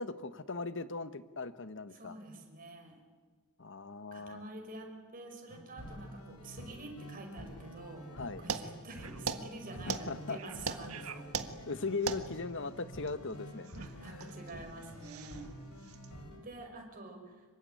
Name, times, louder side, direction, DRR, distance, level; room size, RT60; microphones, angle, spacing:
voice 1, 0.0-2.2 3.6-4.4 8.1-8.4 9.9-10.4 11.7-14.2, left 3 dB, 55° left, 12 dB, 1.3 m, -39 dB
voice 2, 1.9-3.0 4.1-8.1 8.4-11.3 13.8-15.5 16.4-17.4, right 2 dB, 40° right, 2 dB, 5.8 m, -48 dB
sound 1, 5.5-16.4, equal, 85° left, 5.8 m, -48 dB
sound 2, 8.5-16.2, right 5 dB, 75° right, 1.6 m, -41 dB
26.0 x 24.0 x 9.2 m, 1.4 s
head